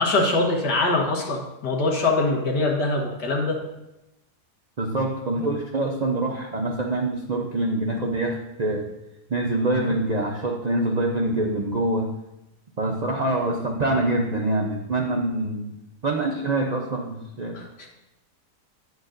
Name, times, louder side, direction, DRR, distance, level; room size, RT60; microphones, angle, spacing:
voice 1, 0.0-3.6 17.5-17.7, left 2 dB, 85° left, -1 dB, 2.0 m, -23 dB
voice 2, 4.8-8.9 9.3-12.1 12.8-15.7 16.0-17.6, right 2 dB, 65° right, 0 dB, 0.4 m, -25 dB
9.2 x 8.1 x 2.5 m, 0.92 s
omnidirectional pair, 1.7 m